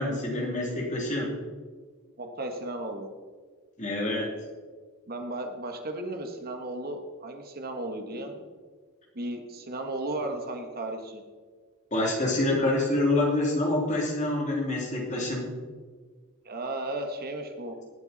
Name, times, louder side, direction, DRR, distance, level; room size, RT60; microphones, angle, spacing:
voice 1, 0.0-1.3 3.8-4.3 11.9-15.5, left 2 dB, 35° left, -1 dB, 3.0 m, -26 dB
voice 2, 2.2-3.1 5.1-8.3 9.1-11.2 16.4-17.8, right 2 dB, 45° right, 5 dB, 1.5 m, -35 dB
18.5 x 8.1 x 4.2 m, 1.5 s
head